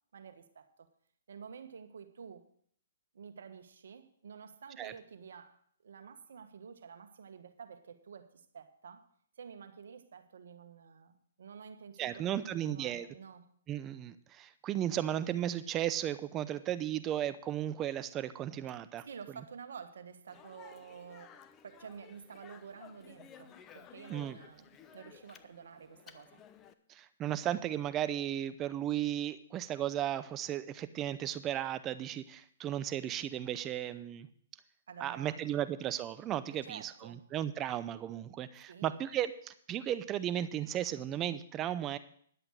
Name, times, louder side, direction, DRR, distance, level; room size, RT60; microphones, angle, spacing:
voice 1, 0.1-0.9 1.3-2.4 3.1-9.1 9.4-13.5 19.0-26.4 34.9-35.7 36.5-37.3 38.7-39.0, right 6 dB, 70° right, 1.4 m, -50 dB
voice 2, 12.0-13.1 13.7-19.1 24.1-24.4 26.9-34.3 35.0-42.0, right 11 dB, 25° right, 0.6 m, -35 dB
Speech, 20.3-26.7, left 8 dB, 25° left, 0.8 m, -56 dB
11.0 x 7.9 x 6.5 m
hypercardioid pair, 135°, 0 cm